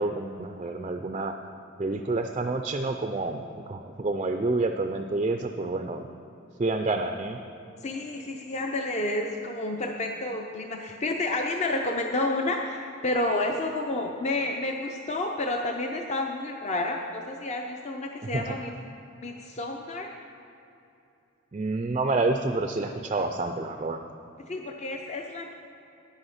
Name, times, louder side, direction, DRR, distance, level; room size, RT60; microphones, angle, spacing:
voice 1, 0.0-1.3 1.8-6.1 6.6-7.4 18.2-18.6 21.5-24.0, right 3 dB, 30° right, 5 dB, 0.3 m, -28 dB
voice 2, 7.8-18.7 19.2-20.1 24.5-25.5, left 2 dB, 35° left, 3 dB, 0.5 m, -30 dB
10.5 x 8.0 x 5.7 m, 2.7 s
head